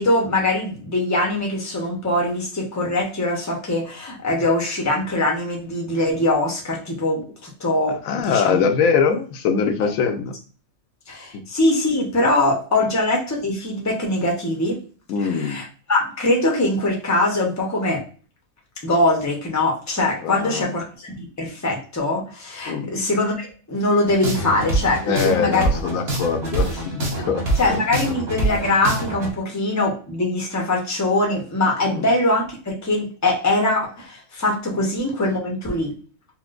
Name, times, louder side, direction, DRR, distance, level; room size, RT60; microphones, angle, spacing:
voice 1, 0.0-8.6 11.1-14.8 15.2-18.0 18.8-25.6 27.6-35.9, left 2 dB, 20° left, -1 dB, 0.4 m, -22 dB
voice 2, 8.0-10.3 11.3-11.4 15.1-15.6 20.2-20.7 22.7-22.9 25.1-27.4 27.7-27.8 31.9-32.1, left 6 dB, 75° left, 7 dB, 1.0 m, -22 dB
sound 1, 24.1-29.3, right 2 dB, 50° right, 1.1 m, -25 dB
4.3 x 2.1 x 2.4 m, 0.39 s
omnidirectional pair, 1.5 m